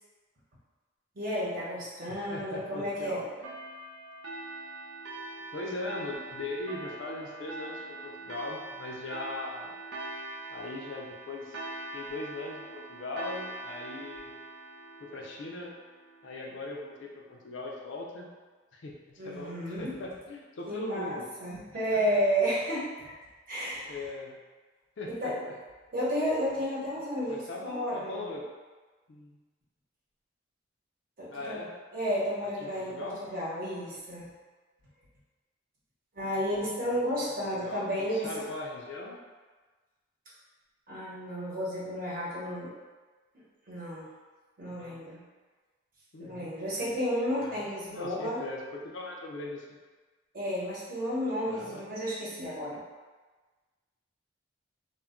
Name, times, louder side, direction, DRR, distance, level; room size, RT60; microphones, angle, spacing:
voice 1, 1.2-3.2 19.2-20.0 20.7-22.9 23.5-24.0 25.1-25.4 25.9-28.2 31.2-31.7 31.9-34.3 36.1-38.5 40.9-42.7 43.7-44.1 44.6-45.2 46.2-48.4 50.3-52.8, equal, 45° right, -7 dB, 0.9 m, -32 dB
voice 2, 2.1-3.2 5.5-9.7 10.5-11.6 11.9-14.3 15.0-15.7 16.2-18.3 18.7-21.2 23.8-24.4 25.0-25.5 27.3-28.5 29.1-29.4 31.3-31.7 32.6-33.2 37.2-37.9 38.1-39.2 44.7-45.0 46.1-46.5 47.4-49.7 51.5-51.9, left 2 dB, 65° left, -1 dB, 0.4 m, -40 dB
sound 1, 3.4-16.5, right 2 dB, 75° right, 0.5 m, -43 dB
2.2 x 2.1 x 3.6 m, 1.3 s
head